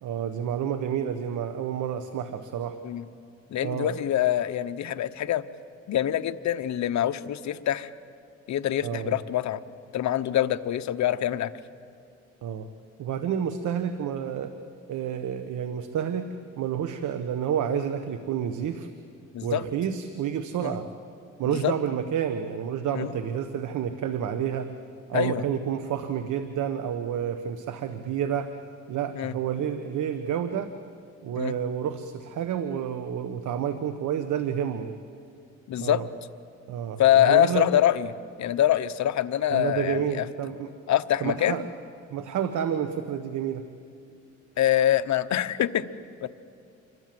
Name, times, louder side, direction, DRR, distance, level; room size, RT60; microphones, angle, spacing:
voice 1, 0.0-2.8 3.6-4.0 8.8-9.2 12.4-12.7 13.0-14.5 14.9-16.3 16.6-18.9 19.4-20.9 21.4-24.7 25.1-28.5 28.9-30.7 31.2-35.0 35.8-36.1 36.7-37.7 39.5-40.7 41.2-41.6 42.1-43.6, right 8 dB, 75° right, 8 dB, 1.3 m, -29 dB
voice 2, 3.5-5.4 5.9-7.9 8.5-9.6 9.9-11.5 19.3-19.6 20.6-20.7 21.4-21.7 22.9-23.2 25.1-25.4 29.2-29.3 31.4-31.5 35.7-36.0 37.0-38.1 38.4-40.2 40.9-41.7 44.6-45.9 46.2-46.3, left 12 dB, 65° left, 10 dB, 1.0 m, -24 dB
28.0 x 24.0 x 7.8 m, 2.3 s
cardioid pair, 90°, 30 cm